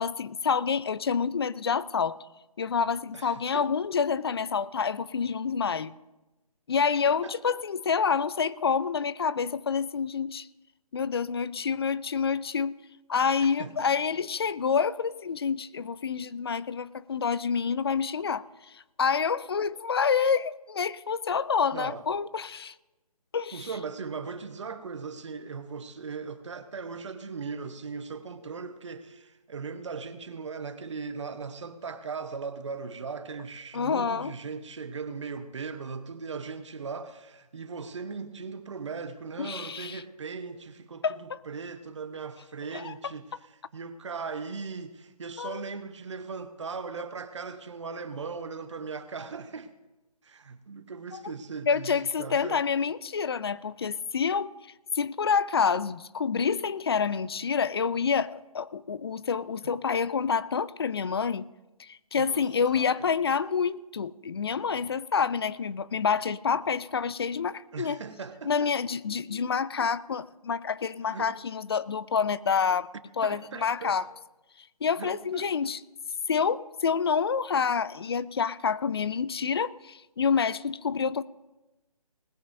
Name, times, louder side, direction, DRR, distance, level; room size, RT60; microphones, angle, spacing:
voice 1, 0.0-2.2 2.6-5.9 6.7-10.5 10.9-12.7 13.1-18.4 18.7-22.7 23.3-23.6 33.7-34.3 39.4-40.0 41.0-41.4 42.7-42.9 45.4-45.6 51.7-54.5 54.9-61.5 61.8-68.0 68.4-72.9 73.2-74.1 74.8-75.8 76.3-81.2, left 6 dB, 40° left, 17 dB, 0.4 m, -28 dB
voice 2, 3.1-3.7 7.2-7.6 13.4-13.7 21.7-22.0 23.5-49.7 50.2-52.6 62.1-62.5 62.7-63.1 67.7-68.7 71.0-71.3 73.2-74.0 75.0-75.5, right 5 dB, 50° right, 10 dB, 1.0 m, -38 dB
20.0 x 14.5 x 2.6 m, 1.0 s
figure-of-eight pair, 150°, 19 cm